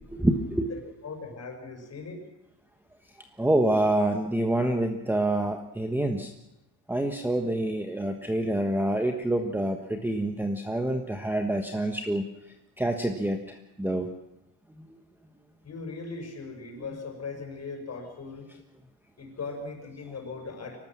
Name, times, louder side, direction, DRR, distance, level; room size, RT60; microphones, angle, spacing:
voice 1, 0.0-0.7 3.4-6.3 6.9-12.3 12.8-14.1 14.8-14.9, right 1 dB, 5° right, 5 dB, 1.3 m, -27 dB
voice 2, 0.7-2.2 15.6-18.5 19.2-20.8, left 4 dB, 35° left, 3 dB, 6.3 m, -39 dB
24.0 x 18.5 x 7.5 m, 0.88 s
cardioid pair, 125°, 46 cm